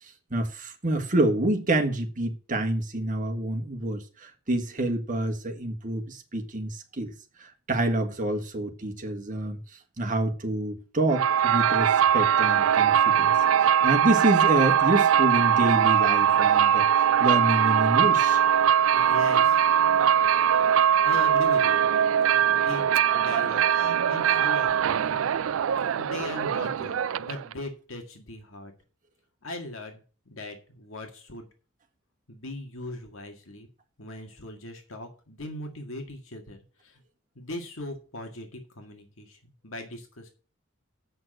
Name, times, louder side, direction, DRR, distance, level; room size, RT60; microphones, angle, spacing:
voice 1, 0.3-7.1 7.4-9.6 10.0-13.3 13.6-18.4, right 1 dB, 40° right, 1.6 m, -27 dB
sound 1, 11.1-27.5, right 9 dB, 70° right, 0.4 m, -21 dB
voice 2, 18.9-19.6 21.0-21.8 22.2-25.2 25.9-28.7 29.4-31.5 32.3-33.7 34.0-37.0 37.4-40.3, left 1 dB, 70° left, 1.9 m, -39 dB
7.8 x 5.9 x 7.7 m
head